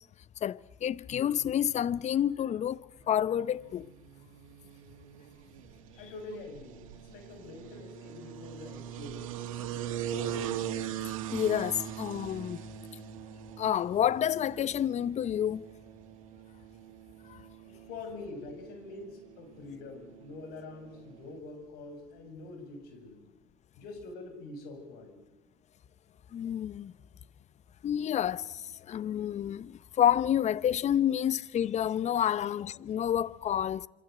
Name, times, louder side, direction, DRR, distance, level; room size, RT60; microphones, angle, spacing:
voice 1, 0.4-3.9 11.3-12.6 13.6-15.7 17.3-17.4 26.3-26.9 27.8-33.9, left 10 dB, 45° left, 0.9 m, -29 dB
sound 1, 3.3-21.4, right 10 dB, 85° right, 2.2 m, -42 dB
voice 2, 6.0-9.7 10.1-10.6 17.9-23.2 23.8-25.2, left 3 dB, 70° left, 7.1 m, -45 dB
26.5 x 25.5 x 7.9 m
hypercardioid pair, 80°, 17 cm